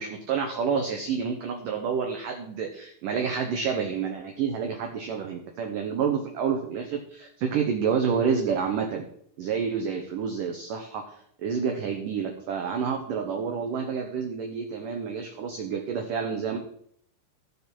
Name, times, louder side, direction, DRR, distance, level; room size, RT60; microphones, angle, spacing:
voice 1, 0.0-9.0 9.4-16.6, right 6 dB, 90° right, 3 dB, 1.8 m, -29 dB
16.0 x 6.8 x 4.5 m, 0.66 s
omnidirectional pair, 5.5 m